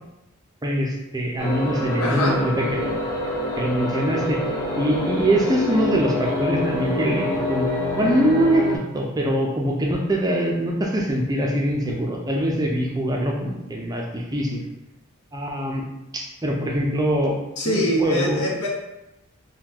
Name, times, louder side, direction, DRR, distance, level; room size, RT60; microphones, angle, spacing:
voice 1, 0.6-3.0 3.6-4.4 4.7-7.7 7.9-8.7 8.9-14.6 15.3-15.9 16.1-17.4 17.7-18.4, right 1 dB, 15° right, -1 dB, 0.4 m, -23 dB
sound 1, 1.4-8.8, left 1 dB, 20° left, 0.7 m, -26 dB
voice 2, 2.0-2.4 17.6-18.7, equal, 80° left, -2 dB, 0.8 m, -23 dB
3.6 x 2.2 x 2.9 m, 0.93 s
head